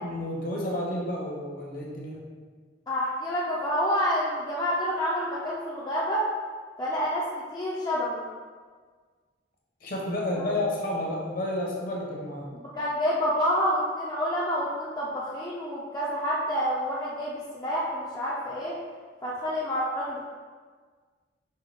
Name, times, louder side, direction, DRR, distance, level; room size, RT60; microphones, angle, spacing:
voice 1, 0.0-2.2 9.8-12.5, left 1 dB, 45° left, -3 dB, 0.8 m, -31 dB
voice 2, 2.9-6.2 6.8-8.2 10.4-10.5 12.5-18.8 19.2-20.3, equal, 20° left, -7 dB, 0.4 m, -28 dB
5.4 x 2.2 x 3.2 m, 1.5 s
head